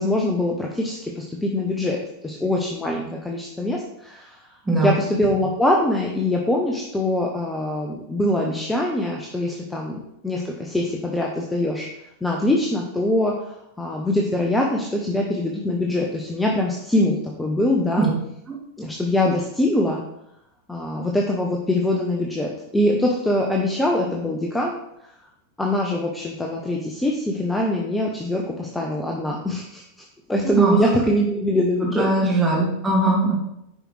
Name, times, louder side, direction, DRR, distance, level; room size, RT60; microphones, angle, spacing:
voice 1, 0.0-2.0 2.2-4.4 4.8-11.9 12.2-18.1 18.8-20.0 20.7-24.7 25.6-29.8 30.3-32.4, left 1 dB, 10° left, -1 dB, 0.9 m, -23 dB
voice 2, 30.4-30.8 32.0-33.4, right 2 dB, 10° right, -3 dB, 2.4 m, -20 dB
9.9 x 5.0 x 3.3 m, 0.80 s
figure-of-eight pair, 90°, 0 cm